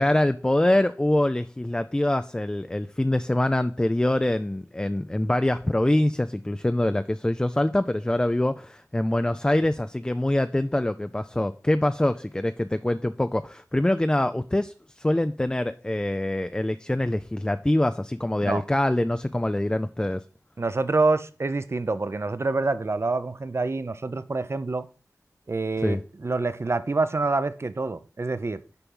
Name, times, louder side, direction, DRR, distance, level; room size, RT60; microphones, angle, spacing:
voice 1, 0.0-20.2 25.8-26.0, left 1 dB, 15° left, 0.3 m, -24 dB
voice 2, 20.6-24.9 25.5-28.6, right 3 dB, 45° right, 0.6 m, -26 dB
6.9 x 4.6 x 5.4 m
wide cardioid pair, 55°, 6 cm